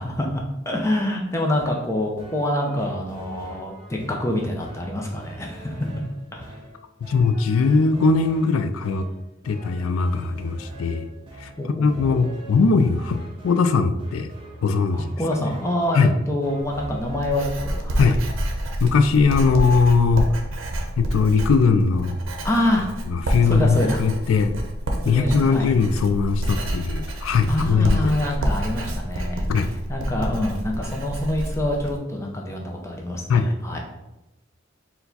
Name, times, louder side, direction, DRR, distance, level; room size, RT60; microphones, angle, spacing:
voice 1, 0.0-5.8 6.3-6.6 11.6-12.3 14.9-18.2 22.4-22.9 23.4-24.0 25.0-25.8 27.5-33.8, left 1 dB, 15° left, 0 dB, 0.5 m, -26 dB
sound 1, 1.3-17.4, right 1 dB, 25° right, 0.7 m, -43 dB
voice 2, 7.0-9.0 9.5-11.1 11.4-11.5 11.8-14.3 14.6-15.1 16.0-16.1 18.0-18.2 18.8-20.3 21.0-22.2 23.1-24.5 25.0-28.1 29.5-29.7 33.3-33.5, left 4 dB, 90° left, 10 dB, 0.4 m, -20 dB
Writing, 16.6-32.0, right 1 dB, 80° right, 0.6 m, -28 dB
4.6 x 2.2 x 3.9 m, 0.98 s
head